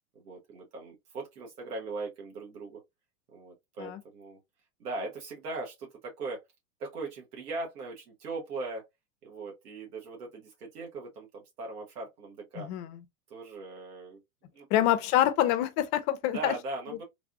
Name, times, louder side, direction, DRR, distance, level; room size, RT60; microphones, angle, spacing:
voice 1, 0.1-2.8 3.3-4.4 4.8-6.4 6.8-8.9 9.2-12.7 13.3-14.2 14.5-14.7 16.3-17.0, right 3 dB, 85° right, 1.2 m, -39 dB
voice 2, 12.6-13.0 14.7-16.5, left 12 dB, 40° left, 0.5 m, -26 dB
3.3 x 2.5 x 2.5 m
hypercardioid pair, 115°, 45 cm